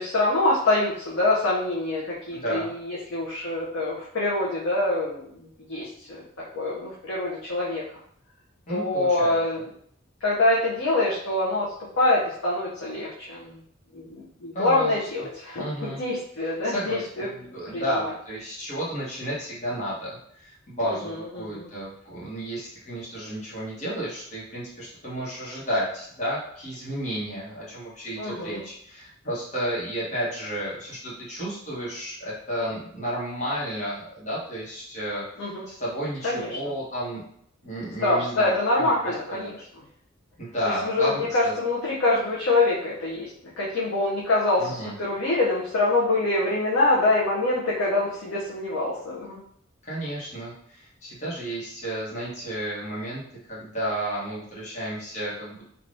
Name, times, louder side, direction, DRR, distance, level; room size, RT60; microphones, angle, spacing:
voice 1, 0.0-6.2 6.5-7.8 8.7-9.6 10.2-13.6 13.9-17.3 17.7-18.1 20.8-21.7 28.2-28.7 35.4-35.6 36.2-36.6 38.0-39.6 40.8-43.3 43.6-49.4, left 2 dB, 65° left, -6 dB, 0.6 m, -25 dB
voice 2, 2.3-2.7 8.7-9.4 14.5-15.0 15.6-16.0 16.6-35.2 35.7-37.2 37.6-39.5 40.4-41.5 44.6-44.9 49.9-53.2 53.5-55.6, equal, 35° left, -7 dB, 1.1 m, -32 dB
3.3 x 2.4 x 2.5 m, 0.67 s
head